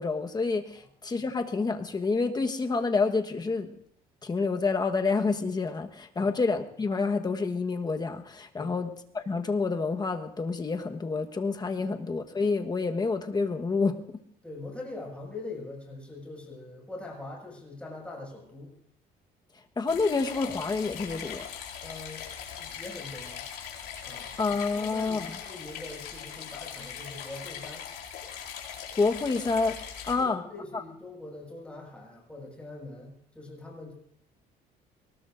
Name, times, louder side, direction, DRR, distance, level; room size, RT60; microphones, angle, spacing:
voice 1, 0.0-3.7 4.2-14.0 19.8-21.5 24.4-25.3 29.0-29.8 30.1-30.4 30.7-30.8, left 4 dB, 25° left, 6 dB, 1.3 m, -28 dB
voice 2, 14.4-18.7 21.8-23.4 24.0-24.3 24.7-27.9 30.1-33.9, left 2 dB, 5° left, -2 dB, 6.3 m, -43 dB
sound 1, 19.9-30.1, left 8 dB, 80° left, 4.2 m, -41 dB
22.5 x 19.5 x 2.6 m, 0.68 s
cardioid pair, 110°, 17 cm